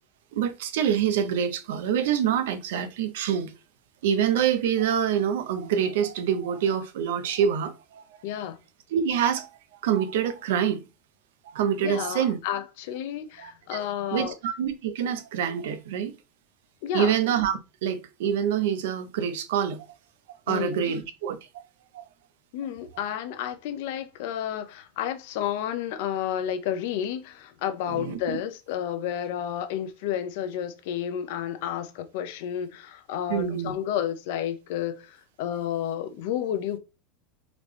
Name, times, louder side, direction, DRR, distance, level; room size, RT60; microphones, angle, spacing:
voice 1, 0.3-3.5 4.0-8.0 8.9-9.5 9.8-10.8 11.4-12.4 13.4-16.1 16.9-19.9 20.5-21.6 21.9-22.0 27.9-28.4 33.3-33.7, right 8 dB, 90° right, 0.6 m, -26 dB
voice 2, 8.2-8.6 11.8-14.3 16.8-17.2 20.5-21.0 22.5-36.8, left 10 dB, 60° left, 0.6 m, -31 dB
3.9 x 3.3 x 3.0 m
supercardioid pair, 180°, 0 cm